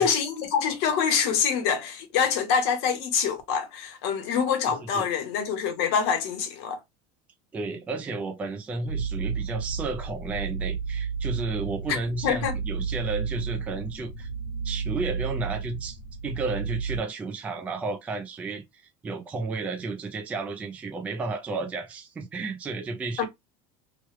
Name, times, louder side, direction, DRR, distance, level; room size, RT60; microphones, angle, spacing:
voice 1, 0.0-6.8 11.9-12.0 12.2-12.6 23.2-23.3, left 7 dB, 70° left, 0.9 m, -25 dB
voice 2, 7.5-14.3 14.6-18.6 19.0-23.2, right 3 dB, 10° right, 0.3 m, -32 dB
sound 1, 8.9-17.0, right 6 dB, 90° left, 1.0 m, -32 dB
3.0 x 2.2 x 3.1 m
cardioid pair, 175°, 14 cm